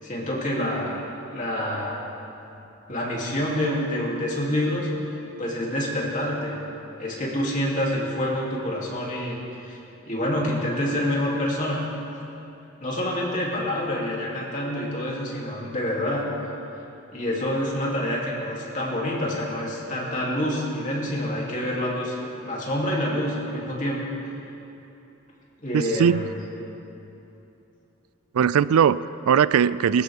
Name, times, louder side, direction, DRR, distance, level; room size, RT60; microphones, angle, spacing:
voice 1, 0.0-1.0 1.3-2.1 2.9-6.6 7.0-9.8 10.1-11.8 12.8-16.3 17.1-22.1 22.4-24.0 25.6-26.4, left 1 dB, 35° left, -4 dB, 3.0 m, -27 dB
voice 2, 25.7-26.3 28.3-30.0, right 7 dB, 85° right, 17 dB, 0.4 m, -20 dB
23.0 x 14.0 x 3.6 m, 2.9 s
head